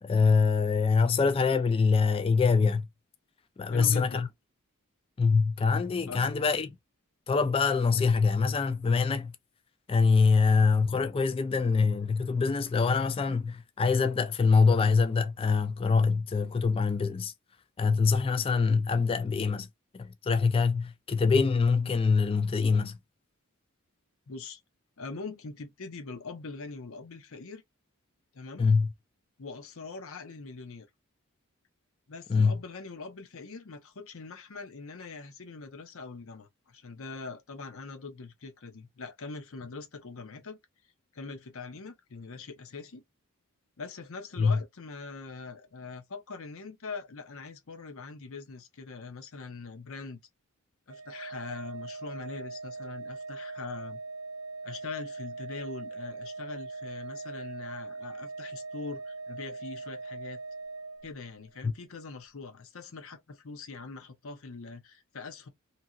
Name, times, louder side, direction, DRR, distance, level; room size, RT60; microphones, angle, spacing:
voice 1, 0.0-2.9 3.6-4.3 5.2-6.7 7.3-9.3 9.9-17.3 17.8-19.7 19.9-23.0 28.6-28.9 32.3-32.5 44.4-44.6 61.6-61.7, left 5 dB, 25° left, 0.3 m, -24 dB
voice 2, 3.7-4.3 6.1-6.2 24.3-24.6 25.0-27.6 28.3-28.7 29.4-30.9 32.1-40.6 41.1-43.0 43.8-50.2 50.9-54.0 54.6-60.4 61.0-65.5, left 4 dB, 65° left, 0.7 m, -42 dB
Organ, 50.9-61.6, right 3 dB, 90° right, 0.5 m, -41 dB
2.8 x 2.7 x 2.4 m
head